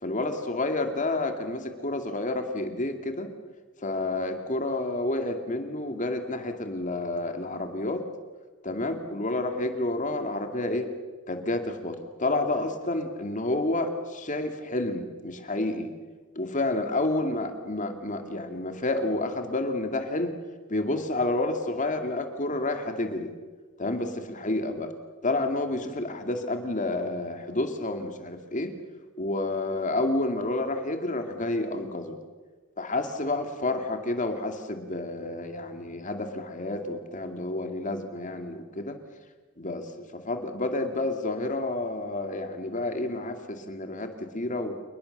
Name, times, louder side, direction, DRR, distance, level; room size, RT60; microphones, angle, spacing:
voice 1, 0.0-3.3 3.8-8.1 8.6-10.9 11.3-15.9 16.4-20.3 20.7-23.3 23.8-24.9 25.2-28.7 29.2-32.2 32.8-39.0 39.6-44.7, left 2 dB, 40° left, 6 dB, 2.5 m, -30 dB
28.5 x 21.0 x 6.7 m, 1.4 s
head